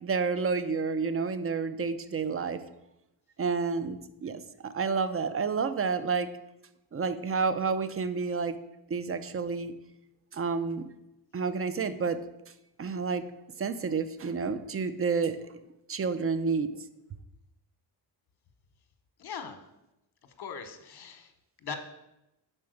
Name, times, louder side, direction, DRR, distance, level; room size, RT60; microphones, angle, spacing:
voice 1, 0.0-2.6 3.4-6.3 6.9-8.6 8.9-9.7 10.3-10.8 11.3-12.2 12.8-13.2 13.6-15.4 15.9-16.8, right 5 dB, 30° right, 12 dB, 0.5 m, -30 dB
voice 2, 19.2-19.6 20.4-21.3 21.6-21.8, left 6 dB, 60° left, 8 dB, 1.0 m, -39 dB
5.7 x 4.4 x 6.3 m, 0.91 s
cardioid pair, 90°, 44 cm